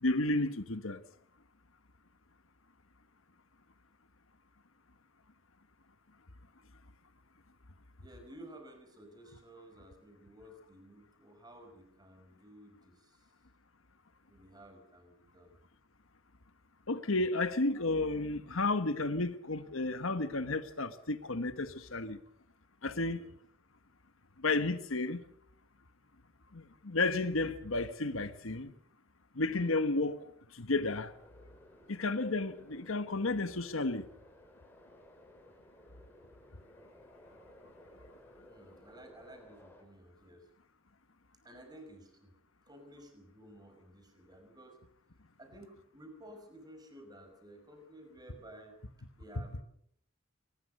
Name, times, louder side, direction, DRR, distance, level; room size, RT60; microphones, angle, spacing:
voice 1, 0.0-1.0 16.9-22.2 22.8-23.3 24.4-25.2 26.5-28.7 29.3-31.1 31.9-34.1, left 2 dB, 75° left, 1.3 m, -32 dB
voice 2, 8.0-13.3 14.3-15.6 17.8-17.9 23.0-23.3 38.5-40.5 41.4-42.4 42.7-44.8 45.4-48.8 49.2-49.6, right 1 dB, 20° right, 5.4 m, -54 dB
sound 1, 31.1-39.8, left 1 dB, 10° left, 4.5 m, -58 dB
22.5 x 20.0 x 6.6 m
head